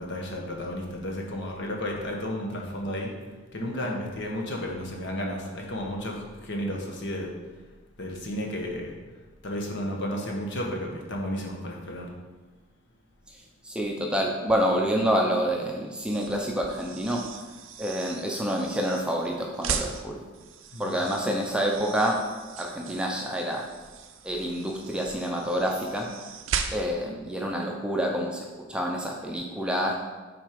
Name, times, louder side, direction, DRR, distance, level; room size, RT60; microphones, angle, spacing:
voice 1, 0.0-3.1 3.5-7.3 8.0-8.9 9.4-12.1 20.7-21.0, equal, 60° left, 0 dB, 1.2 m, -32 dB
voice 2, 13.6-17.2 17.8-20.2 20.8-22.2 22.6-23.6 24.2-26.1 26.7-29.9, equal, 5° right, 0 dB, 0.6 m, -27 dB
sound 1, 16.0-27.1, right 6 dB, 70° right, 0.6 m, -38 dB
6.2 x 4.5 x 5.1 m, 1.3 s
head